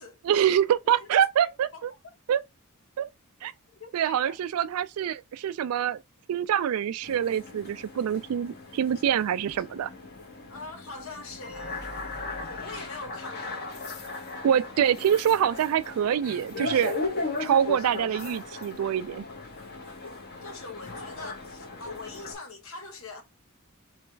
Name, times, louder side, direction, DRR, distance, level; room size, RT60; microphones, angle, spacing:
voice 1, 0.2-1.9 2.3-2.4 3.0-3.1 3.4-3.5 3.9-6.0 6.3-9.9 14.4-17.0 17.4-19.2, right 9 dB, 80° right, 0.3 m, -25 dB
voice 2, 1.4-1.8 3.8-4.4 10.5-11.7 12.4-13.7 20.4-23.2, left 3 dB, 65° left, 1.1 m, -42 dB
sound 1, 7.0-22.3, left 3 dB, 50° left, 1.5 m, -37 dB
3.3 x 3.1 x 4.4 m
head